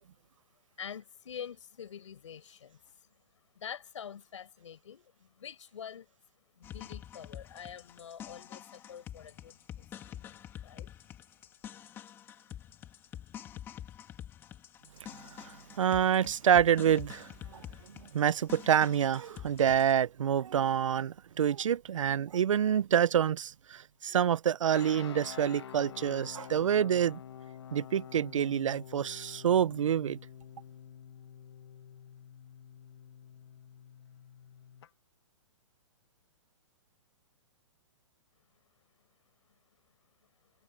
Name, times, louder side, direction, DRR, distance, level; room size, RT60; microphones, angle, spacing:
voice 1, 0.8-2.8 3.6-6.1 6.5-10.9, left 8 dB, 75° left, 5.2 m, -46 dB
sound 1, 6.6-19.9, left 10 dB, 15° left, 2.1 m, -47 dB
voice 2, 15.4-27.2 27.7-30.2, right 9 dB, 85° right, 0.6 m, -27 dB
sound 2, 24.7-34.9, left 9 dB, 60° left, 1.4 m, -48 dB
hypercardioid pair, 165°, 16 cm